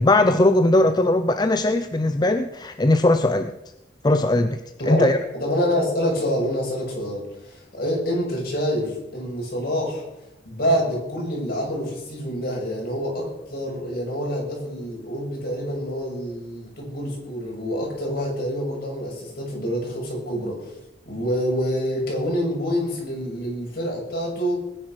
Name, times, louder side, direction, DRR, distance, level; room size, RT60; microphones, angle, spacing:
voice 1, 0.0-3.5 4.0-4.6 4.9-5.2, left 2 dB, 25° left, 8 dB, 0.6 m, -19 dB
voice 2, 4.8-10.0 10.4-20.5 21.1-24.6, equal, 55° left, -2 dB, 7.3 m, -26 dB
20.5 x 9.9 x 6.3 m, 0.91 s
head